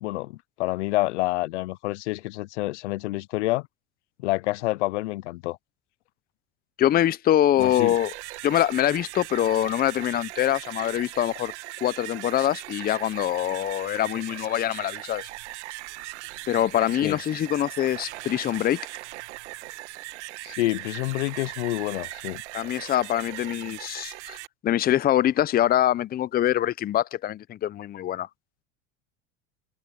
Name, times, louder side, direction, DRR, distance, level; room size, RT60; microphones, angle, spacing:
voice 1, 0.0-3.7 4.2-5.6 7.6-8.0 17.0-17.2 20.4-22.4, left 19 dB, 80° left, 0.7 m, -28 dB
voice 2, 6.8-8.1 8.4-11.5 11.8-15.2 16.5-18.8 22.5-24.4 24.6-28.3, left 12 dB, 25° left, 0.6 m, -24 dB
sound 1, 7.4-24.5, right 19 dB, 80° right, 2.2 m, -39 dB
supercardioid pair, 105°, 35 cm